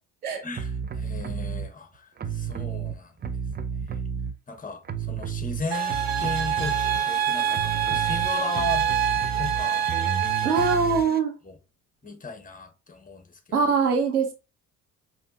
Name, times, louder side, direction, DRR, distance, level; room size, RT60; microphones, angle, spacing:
sound 1, 0.6-1.7 2.2-4.6 4.8-11.2, right 7 dB, 20° right, 0.6 m, -32 dB
voice 1, 1.0-3.1 4.5-6.8 7.0-8.9 9.4-9.9 12.0-13.3, left 3 dB, 20° left, 1.3 m, -35 dB
sound 2, 5.7-10.7, right 9 dB, 50° right, 1.0 m, -26 dB
voice 2, 10.4-11.4 13.5-14.3, right 5 dB, 90° right, 0.9 m, -22 dB
5.2 x 2.9 x 2.7 m
figure-of-eight pair, 50°, 43 cm